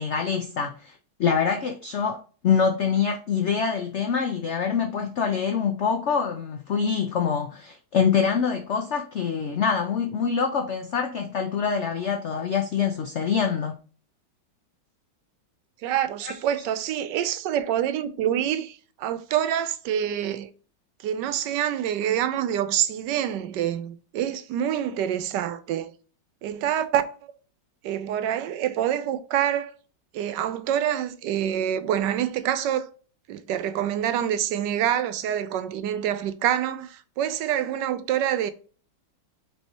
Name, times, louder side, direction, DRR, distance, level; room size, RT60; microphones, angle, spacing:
voice 1, 0.0-2.2 2.4-13.8 16.2-16.3, left 6 dB, 75° left, 0.6 m, -25 dB
voice 2, 15.8-20.5 21.0-25.9 26.4-27.3 27.8-29.7 30.1-32.9 33.3-38.5, right 10 dB, 80° right, 1.2 m, -26 dB
5.4 x 3.4 x 2.8 m
omnidirectional pair, 1.9 m